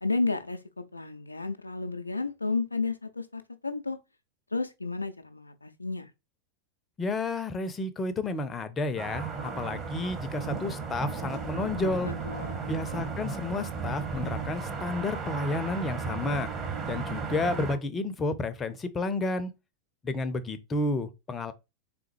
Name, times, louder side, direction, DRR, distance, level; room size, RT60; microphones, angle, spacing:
voice 1, 0.0-4.0 4.5-6.1 12.0-12.6, left 3 dB, 80° left, 0.4 m, -32 dB
voice 2, 7.0-12.1 12.6-16.5 16.9-19.5 20.0-21.5, left 2 dB, 20° left, 0.5 m, -31 dB
sound 1, 9.0-17.8, right 5 dB, 20° right, 0.9 m, -35 dB
3.7 x 3.4 x 3.1 m
figure-of-eight pair, 90°, 0 cm